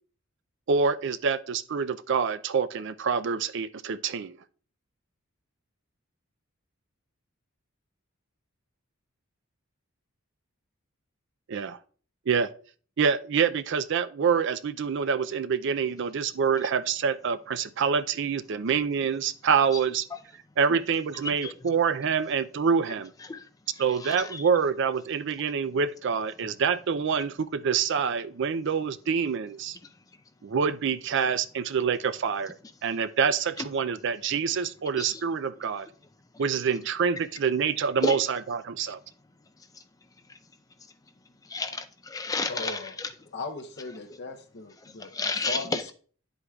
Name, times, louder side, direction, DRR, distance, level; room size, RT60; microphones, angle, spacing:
voice 1, 0.7-4.4 11.5-11.8 12.3-12.5 13.0-20.1 20.6-23.1 23.8-29.8 30.4-35.9 36.4-39.0, right 6 dB, 60° right, 0.4 m, -26 dB
voice 2, 21.2-21.7 23.2-23.5 23.8-24.5 29.8-30.0 33.6-33.7 35.0-35.2 36.3-36.4 38.0-38.2 39.6-39.8 40.3-40.4 41.4-43.1 44.1-44.2 44.8-45.9, left 3 dB, 15° left, 0.5 m, -33 dB
voice 3, 42.5-42.9 43.3-45.9, left 2 dB, 50° left, 0.7 m, -38 dB
9.9 x 7.9 x 2.3 m
head